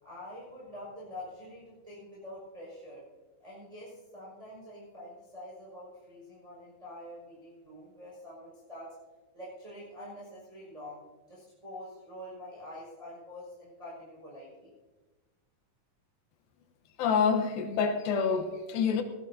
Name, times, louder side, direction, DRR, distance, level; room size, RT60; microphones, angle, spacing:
voice 1, 0.0-3.0 3.4-8.9 9.3-11.0 11.3-14.7, left 1 dB, 10° right, -6 dB, 5.8 m, -46 dB
voice 2, 17.0-19.0, left 6 dB, 85° left, 6 dB, 3.0 m, -27 dB
20.0 x 16.0 x 2.8 m, 1.2 s
omnidirectional pair, 4.0 m